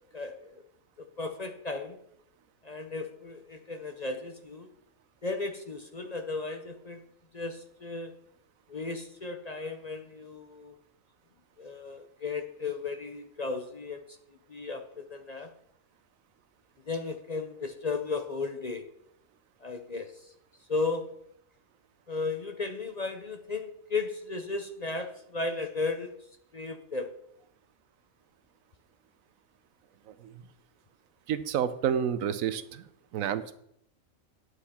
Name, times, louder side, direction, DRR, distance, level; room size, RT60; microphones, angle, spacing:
voice 1, 0.1-0.6 1.0-2.0 2.6-4.7 5.2-7.0 7.3-8.1 8.7-10.7 11.6-14.2 14.5-15.5 16.9-18.9 19.6-20.3 20.7-21.1 22.1-26.1 26.5-27.1, left 3 dB, 40° left, 6 dB, 0.6 m, -35 dB
voice 2, 31.3-32.9 33.1-33.5, right 8 dB, 85° right, 13 dB, 1.1 m, -30 dB
9.8 x 8.1 x 4.3 m, 0.75 s
omnidirectional pair, 1.4 m